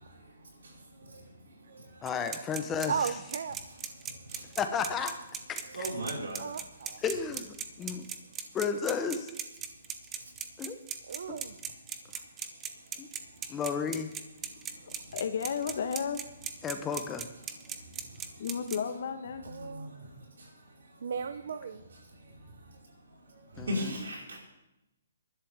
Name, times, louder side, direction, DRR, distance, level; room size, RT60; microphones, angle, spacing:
voice 1, 0.0-2.1 4.0-4.6 5.7-6.5 10.2-10.3 13.3-13.5 14.5-15.1 17.5-18.5 19.4-21.0 22.1-24.5, equal, 90° right, -2 dB, 5.1 m, -41 dB
voice 2, 2.0-2.9 4.6-5.1 5.5-5.9 7.0-8.1 8.5-9.3 10.6-10.8 11.3-11.4 13.0-13.1 13.5-14.1 16.6-17.3 23.6-23.9, left 6 dB, 15° left, 8 dB, 0.9 m, -33 dB
sound 1, 2.1-18.8, right 8 dB, 15° right, 0.8 m, -38 dB
voice 3, 2.9-3.6 6.4-7.0 11.1-11.6 19.4-19.9 21.0-21.8, right 6 dB, 65° right, 10 dB, 0.7 m, -35 dB
voice 4, 15.1-16.2 18.4-19.5, left 6 dB, 60° left, 9 dB, 1.3 m, -33 dB
21.5 x 11.5 x 3.6 m, 0.91 s
hypercardioid pair, 160°, 0 cm